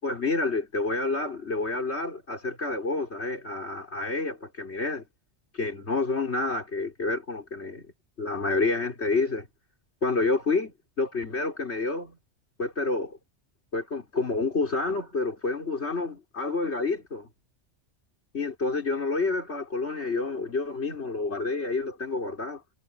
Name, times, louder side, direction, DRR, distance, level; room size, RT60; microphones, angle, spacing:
voice 1, 0.0-5.1 5.5-7.9 8.2-9.5 10.0-12.2 12.6-13.2 13.7-17.3 18.3-22.6, left 3 dB, 65° left, 4.4 m, -29 dB
omnidirectional pair, 1.2 m